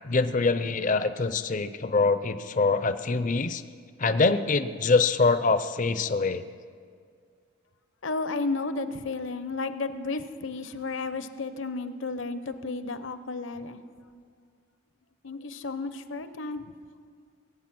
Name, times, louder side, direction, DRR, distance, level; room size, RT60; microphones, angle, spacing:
voice 1, 0.0-3.6 4.0-6.4, left 4 dB, 40° left, 12 dB, 0.5 m, -24 dB
voice 2, 8.0-13.8 15.2-16.6, left 3 dB, 65° left, 11 dB, 0.8 m, -33 dB
21.5 x 8.9 x 6.0 m, 2.1 s
head